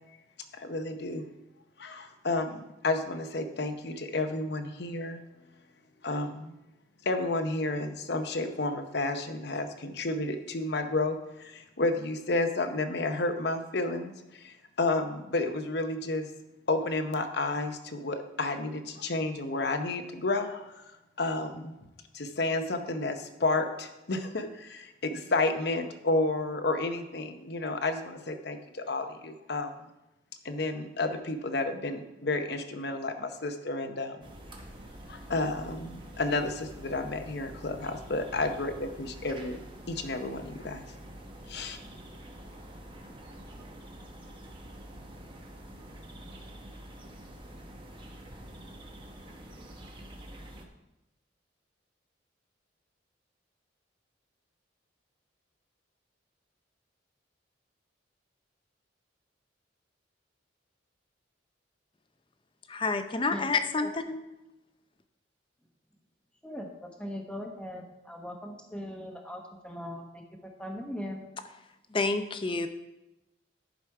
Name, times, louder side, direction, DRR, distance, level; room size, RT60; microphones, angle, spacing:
voice 1, 0.5-1.2 1.8-5.2 6.0-6.5 7.0-16.3 16.7-20.9 21.2-21.8 22.1-29.7 30.4-34.2 35.1-39.6 39.9-40.8 41.5-41.8, left 2 dB, 60° left, 8 dB, 0.8 m, -31 dB
sound 1, 34.2-50.6, right 1 dB, 25° right, 0.9 m, -47 dB
voice 2, 62.7-64.2 71.9-72.7, left 3 dB, 25° left, 9 dB, 0.5 m, -29 dB
voice 3, 66.4-71.3, equal, 5° left, 2 dB, 1.0 m, -40 dB
10.5 x 5.0 x 4.7 m, 0.96 s
head